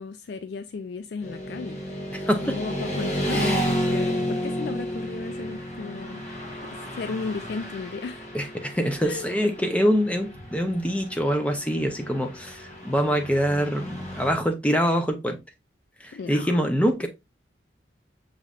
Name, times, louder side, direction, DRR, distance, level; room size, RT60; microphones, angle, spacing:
voice 1, 0.0-1.8 2.4-6.2 6.7-8.3 9.0-9.3 16.1-16.6, left 4 dB, 65° left, 0.3 m, -35 dB
Motorcycle / Traffic noise roadway noise, 1.2-14.3, equal, 40° left, 1.2 m, -32 dB
voice 2, 2.1-2.6 3.3-3.7 8.3-15.4 16.0-17.1, equal, 5° left, 0.6 m, -25 dB
6.6 x 3.1 x 2.4 m
head